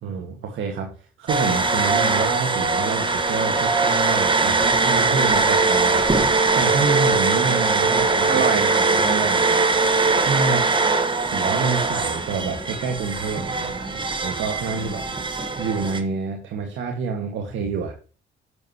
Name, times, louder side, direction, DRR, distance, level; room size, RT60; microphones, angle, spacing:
voice 1, 0.0-8.4 10.2-10.7 11.2-13.5 13.8-13.9 14.2-15.1 15.6-17.9, right 5 dB, 75° right, 2 dB, 1.9 m, -27 dB
sound 1, 1.3-16.0, right 3 dB, 25° right, 1.5 m, -21 dB
voice 2, 8.3-9.6 13.3-14.1 14.8-15.0, right 6 dB, 60° right, 4 dB, 2.4 m, -28 dB
8.9 x 7.9 x 3.0 m, 0.36 s
cardioid pair, 90°, 20 cm